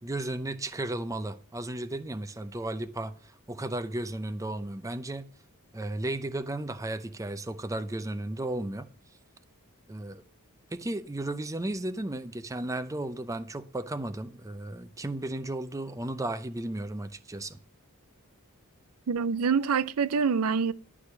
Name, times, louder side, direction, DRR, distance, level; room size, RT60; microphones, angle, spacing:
voice 1, 0.0-5.3 5.7-8.9 9.9-10.2 10.7-17.6, right 1 dB, 15° right, 0.6 m, -34 dB
voice 2, 19.1-20.7, right 5 dB, 70° right, 0.5 m, -26 dB
11.5 x 4.9 x 7.1 m
head